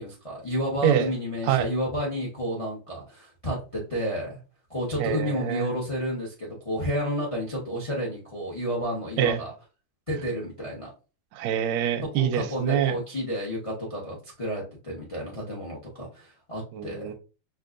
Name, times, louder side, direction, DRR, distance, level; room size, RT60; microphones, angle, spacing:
voice 1, 0.0-4.4 4.7-9.5 10.1-10.9 12.1-17.1, equal, 45° left, -3 dB, 0.4 m, -31 dB
voice 2, 5.0-5.7 9.2-9.4 11.3-12.9 16.7-17.1, right 10 dB, 75° right, 7 dB, 1.1 m, -25 dB
5.3 x 2.3 x 2.5 m, 0.33 s
omnidirectional pair, 2.3 m